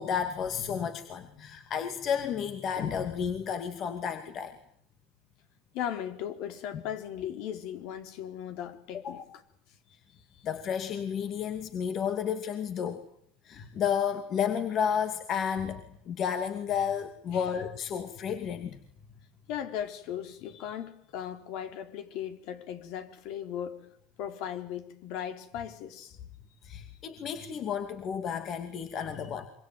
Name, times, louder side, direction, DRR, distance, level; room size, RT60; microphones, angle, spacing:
voice 1, 0.0-4.5 9.0-9.2 10.3-13.1 13.4-18.8 26.6-29.5, left 8 dB, 40° left, 2.5 m, -32 dB
voice 2, 5.7-9.4 17.3-17.5 19.5-23.8 24.2-26.2 26.7-26.8, left 10 dB, 60° left, 4.3 m, -37 dB
26.0 x 24.5 x 9.2 m
supercardioid pair, 130°, 0 cm